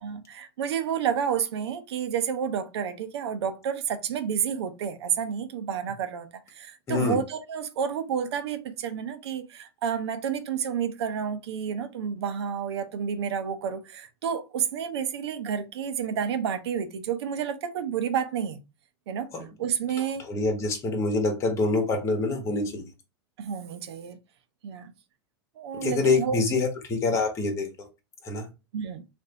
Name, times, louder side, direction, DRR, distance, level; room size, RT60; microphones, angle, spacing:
voice 1, 0.0-18.6 19.1-19.3 19.6-20.2 23.4-24.2 24.6-24.9 25.6-26.4 28.7-29.0, right 7 dB, 75° right, 0.8 m, -30 dB
voice 2, 6.9-7.2 19.3-19.4 20.3-22.8 25.8-27.7 28.2-28.5, left 3 dB, 20° left, 1.1 m, -25 dB
3.2 x 2.6 x 3.9 m
supercardioid pair, 145°, 14 cm